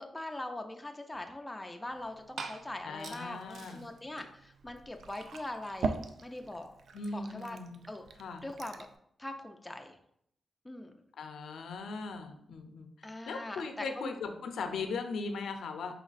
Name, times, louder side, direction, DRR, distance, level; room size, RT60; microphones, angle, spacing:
voice 1, 0.0-5.9 6.2-6.7 7.1-7.6 7.9-8.1 8.4-8.9 9.2-10.0 10.6-10.9 13.0-14.1, left 1 dB, 10° left, 4 dB, 0.4 m, -42 dB
Liquid, 1.9-8.9, right 4 dB, 70° right, 0.4 m, -42 dB
voice 2, 2.8-3.9 6.9-7.8 8.2-8.4 11.2-15.9, left 4 dB, 90° left, 7 dB, 0.5 m, -39 dB
4.2 x 3.0 x 4.0 m, 0.71 s
wide cardioid pair, 120°, 0 cm